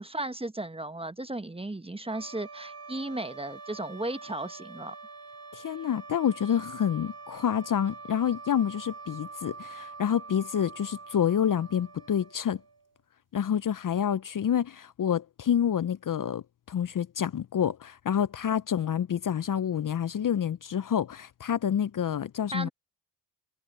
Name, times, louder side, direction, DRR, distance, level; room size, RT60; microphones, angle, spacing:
voice 1, 0.0-4.9 22.5-22.7, right 2 dB, 10° right, 1.2 m, -35 dB
sound 1, 2.0-13.0, right 4 dB, 30° right, 3.7 m, -45 dB
voice 2, 5.5-12.6 13.3-22.7, left 9 dB, 40° left, 0.9 m, -28 dB
hypercardioid pair, 50°, 47 cm